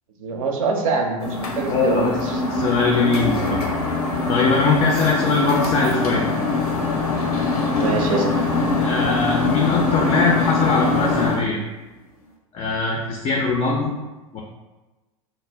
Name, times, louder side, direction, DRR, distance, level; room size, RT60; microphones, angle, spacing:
voice 1, 0.2-2.4 7.8-8.3, right 4 dB, 65° right, 2 dB, 0.5 m, -24 dB
sound 1, 1.2-11.4, left 3 dB, 85° left, 0.6 m, -23 dB
voice 2, 1.7-2.2 2.5-3.6 4.3-6.2 8.8-11.6 12.5-13.9 14.3-14.4, left 4 dB, 30° left, 0 dB, 0.3 m, -21 dB
2.1 x 2.0 x 3.3 m, 1.1 s
hypercardioid pair, 90°, 19 cm